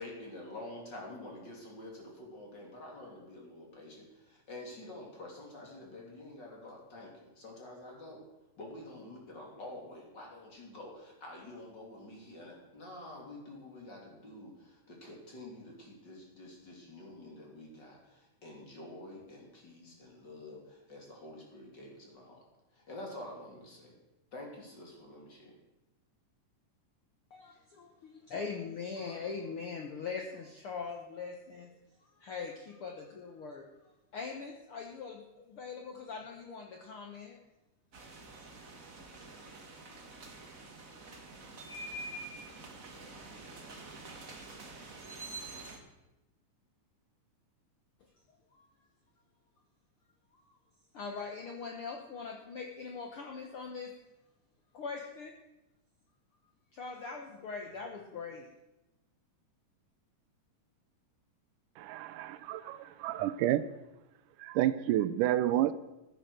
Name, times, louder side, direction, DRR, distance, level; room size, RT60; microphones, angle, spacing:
voice 1, 0.0-8.2 8.6-22.4 22.7-23.9 24.3-25.5, left 1 dB, 35° left, 0 dB, 3.2 m, -48 dB
voice 2, 27.3-31.7 32.0-37.4 48.5-48.7 50.3-50.6 50.9-53.9 54.7-55.3 56.7-58.5, left 5 dB, 60° left, 1 dB, 1.5 m, -42 dB
sound 1, 37.9-45.8, right 2 dB, 35° right, 1.4 m, -47 dB
voice 3, 61.8-63.7 64.4-65.7, right 13 dB, 85° right, 13 dB, 2.2 m, -30 dB
15.0 x 9.3 x 6.4 m, 1.0 s
omnidirectional pair, 3.7 m